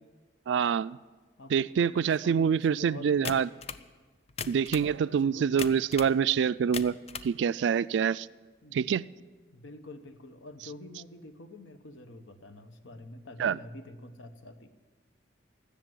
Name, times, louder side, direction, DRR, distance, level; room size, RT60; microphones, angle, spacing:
voice 1, 0.5-1.0 1.5-3.5 4.5-7.0 7.2-8.3 8.7-9.0 13.4-13.6, right 7 dB, 70° right, 18 dB, 0.3 m, -26 dB
voice 2, 1.9-3.5 5.1-5.6 8.6-8.8 9.5-14.7, left 1 dB, 85° left, 9 dB, 1.0 m, -47 dB
sound 1, 3.2-3.9 4.3-4.9 5.6-6.1 6.6-7.3, left 6 dB, 35° left, 0.4 m, -38 dB
15.5 x 6.6 x 9.2 m, 1.4 s
head